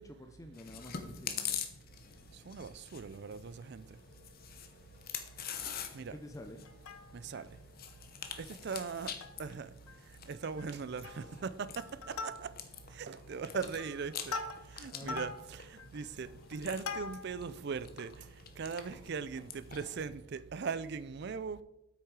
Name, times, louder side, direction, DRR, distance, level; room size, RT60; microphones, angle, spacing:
voice 1, 0.0-1.6 6.1-6.6 13.6-13.7 14.9-15.2, left 1 dB, 15° left, 0.5 m, -49 dB
Chewing mastication, 0.5-20.1, left 8 dB, 40° left, 0.8 m, -46 dB
voice 2, 2.5-3.9 5.9-6.2 7.1-7.4 8.4-9.1 9.4-9.7 10.3-12.3 12.9-14.3 14.8-18.1 18.6-21.6, right 5 dB, 50° right, 0.4 m, -39 dB
Plucked string instrument, 6.6-7.4 7.9-8.0 8.2-8.4 8.9-9.5 9.9-10.0 10.3-10.7 11.0-11.4 11.8-12.8 13.4-17.5 18.0-18.1, left 3 dB, 80° left, 0.7 m, -43 dB
8.2 x 6.5 x 4.7 m
head